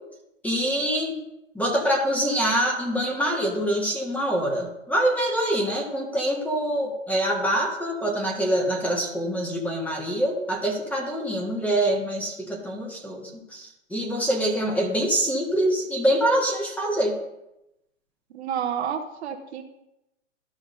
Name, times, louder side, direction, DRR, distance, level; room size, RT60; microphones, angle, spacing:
voice 1, 0.4-1.2 1.5-17.1, right 1 dB, 5° left, 0 dB, 1.6 m, -25 dB
voice 2, 18.3-19.6, right 8 dB, 55° right, 5 dB, 1.0 m, -30 dB
13.5 x 5.9 x 2.7 m, 0.90 s
hypercardioid pair, 130°, 39 cm